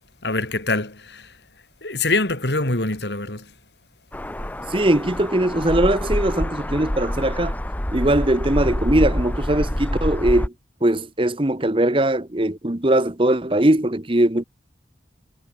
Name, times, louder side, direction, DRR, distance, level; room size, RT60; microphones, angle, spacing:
voice 1, 0.2-1.4 1.8-3.5, left 2 dB, 70° left, 3.6 m, -24 dB
sound 1, 4.1-10.5, equal, 10° left, 0.8 m, -26 dB
voice 2, 4.7-7.5 7.9-10.5 10.8-14.4, right 1 dB, 30° right, 1.1 m, -20 dB
head